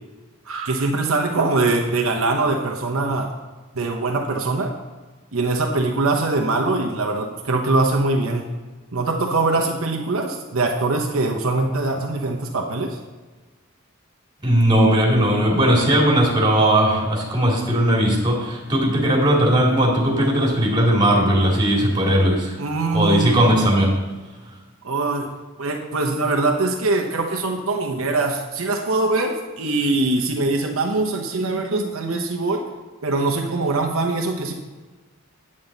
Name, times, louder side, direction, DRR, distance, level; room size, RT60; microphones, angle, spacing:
voice 1, 0.5-3.3 3.7-4.7 5.3-8.5 8.9-13.0 22.6-23.3 24.8-25.3 25.6-32.6 33.0-34.5, right 3 dB, 75° right, 2 dB, 0.9 m, -22 dB
voice 2, 14.4-22.6 22.9-24.0, right 1 dB, 20° right, -2 dB, 2.3 m, -18 dB
8.8 x 8.7 x 3.9 m, 1.3 s
head